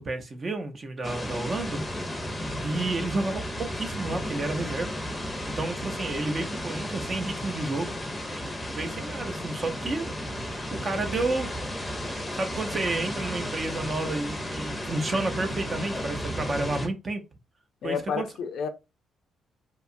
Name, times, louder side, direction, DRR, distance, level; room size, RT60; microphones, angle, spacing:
voice 1, 0.0-1.8 2.6-5.0 5.5-8.0 8.7-10.1 10.7-11.5 12.0-17.2 17.8-18.3, right 2 dB, 40° right, 0.6 m, -31 dB
sound 1, 1.0-16.9, equal, 15° left, 0.6 m, -33 dB
voice 2, 17.8-18.7, left 6 dB, 70° left, 0.4 m, -30 dB
2.8 x 2.3 x 2.6 m
cardioid pair, 90°, 0 cm